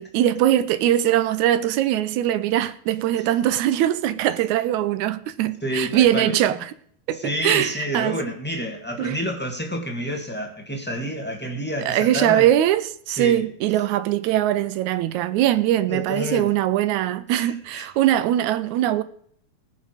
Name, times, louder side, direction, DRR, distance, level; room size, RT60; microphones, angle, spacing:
voice 1, 0.0-6.6 7.1-8.2 9.0-9.2 11.8-19.0, right 12 dB, 80° right, 2.0 m, -21 dB
voice 2, 5.6-6.4 7.1-12.5 13.1-13.5 15.9-16.5 17.3-17.9, equal, 5° left, 1.4 m, -29 dB
19.0 x 6.6 x 5.1 m
omnidirectional pair, 3.5 m